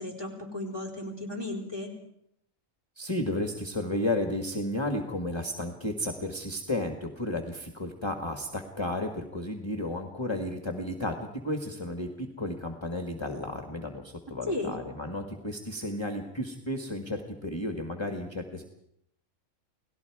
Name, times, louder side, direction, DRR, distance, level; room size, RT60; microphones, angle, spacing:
voice 1, 0.0-1.9 14.5-14.7, left 2 dB, 15° right, 2 dB, 4.1 m, -34 dB
voice 2, 3.0-11.2 11.4-18.6, left 1 dB, 20° left, 4 dB, 1.6 m, -33 dB
29.5 x 18.5 x 4.8 m, 0.75 s
omnidirectional pair, 1.4 m